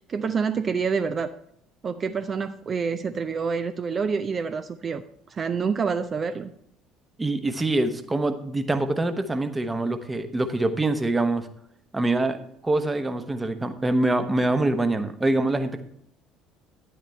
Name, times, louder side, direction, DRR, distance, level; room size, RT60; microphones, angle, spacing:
voice 1, 0.1-1.3 1.8-5.0 5.3-6.5, right 5 dB, 35° right, 10 dB, 0.5 m, -27 dB
voice 2, 7.2-11.5 11.9-12.4 12.6-15.8, right 2 dB, 15° right, 9 dB, 1.0 m, -24 dB
10.5 x 10.0 x 3.3 m, 0.72 s
figure-of-eight pair, 60°, 0 cm